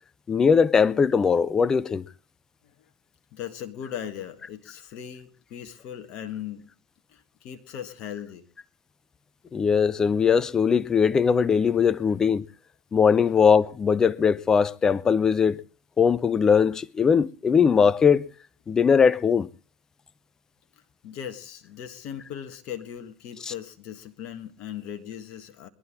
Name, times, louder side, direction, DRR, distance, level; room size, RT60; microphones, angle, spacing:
voice 1, 0.3-2.1 9.5-12.5 12.9-15.6 16.0-18.3 18.7-19.5 23.4-23.5, left 6 dB, 25° left, 0.7 m, -20 dB
voice 2, 3.3-6.7 7.1-8.4 12.1-12.2 13.2-13.4 21.0-25.7, left 9 dB, 50° left, 1.5 m, -38 dB
21.0 x 11.5 x 3.7 m
figure-of-eight pair, 75°, 2 cm